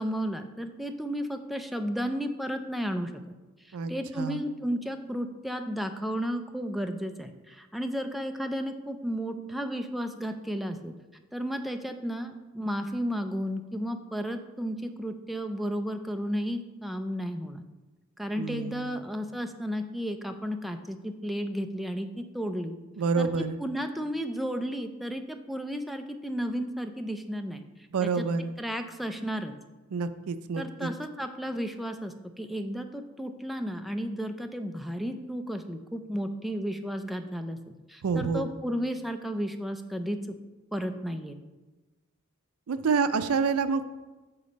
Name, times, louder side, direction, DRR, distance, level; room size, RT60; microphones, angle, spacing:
voice 1, 0.0-3.2 3.6-10.9 11.3-17.6 18.2-22.7 23.2-23.3 23.6-27.6 28.0-28.2 28.6-29.5 30.6-40.4 40.7-41.4, equal, ahead, 6 dB, 0.3 m, -33 dB
voice 2, 3.7-4.4 18.4-19.0 23.0-23.6 27.9-28.5 29.9-30.9 38.0-38.5 42.7-43.8, right 5 dB, 85° right, 12 dB, 0.4 m, -28 dB
6.8 x 4.2 x 5.1 m, 1.2 s
head